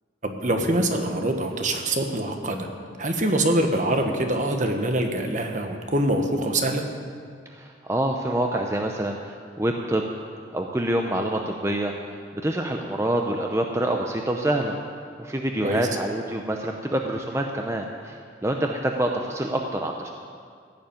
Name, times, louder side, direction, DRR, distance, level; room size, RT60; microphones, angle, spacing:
voice 1, 0.2-2.7 3.0-6.8 15.6-15.8, right 1 dB, 45° right, 5 dB, 1.3 m, -24 dB
voice 2, 7.5-10.1 10.5-14.8 15.2-20.1, right 1 dB, 15° right, 2 dB, 0.7 m, -26 dB
15.5 x 7.1 x 9.1 m, 2.1 s
head